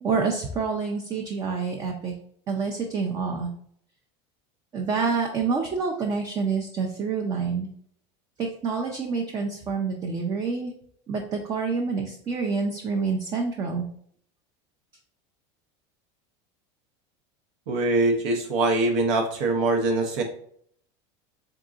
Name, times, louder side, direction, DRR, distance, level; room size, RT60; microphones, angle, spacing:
voice 1, 0.0-2.1 2.5-3.5 4.7-7.7 8.4-10.7 11.1-13.8, right 5 dB, 25° right, 2 dB, 0.4 m, -27 dB
voice 2, 17.7-20.2, right 2 dB, 85° right, 2 dB, 0.7 m, -23 dB
3.7 x 3.6 x 2.4 m, 0.64 s
supercardioid pair, 155°, 15 cm